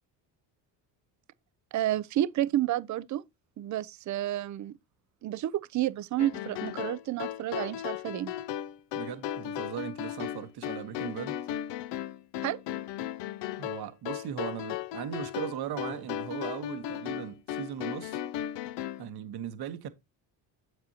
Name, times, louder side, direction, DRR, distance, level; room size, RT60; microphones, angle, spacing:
voice 1, 1.7-3.2 3.6-4.7 5.2-8.3 12.4-12.6, right 13 dB, 45° right, 0.5 m, -30 dB
sound 1, 6.2-19.1, left 11 dB, 70° left, 0.7 m, -36 dB
voice 2, 8.9-11.4 13.6-18.2 19.0-19.9, right 9 dB, 60° right, 1.1 m, -38 dB
7.6 x 7.3 x 2.8 m
supercardioid pair, 85°, 44 cm